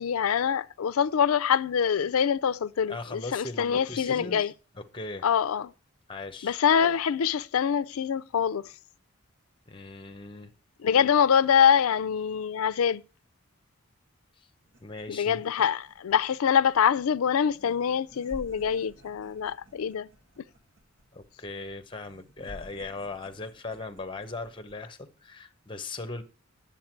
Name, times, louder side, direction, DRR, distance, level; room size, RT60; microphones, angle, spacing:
voice 1, 0.0-4.5 5.2-5.7 6.4-8.7 10.8-13.0 15.1-20.1 20.4-20.5, left 7 dB, 90° left, 0.4 m, -25 dB
voice 2, 2.9-5.3 6.1-6.6 9.7-10.5 14.4-14.5 14.8-15.4 21.1-26.2, left 3 dB, 25° left, 0.8 m, -39 dB
sound 1, 14.6-24.9, equal, 55° right, 2.4 m, -52 dB
9.3 x 7.2 x 4.4 m
head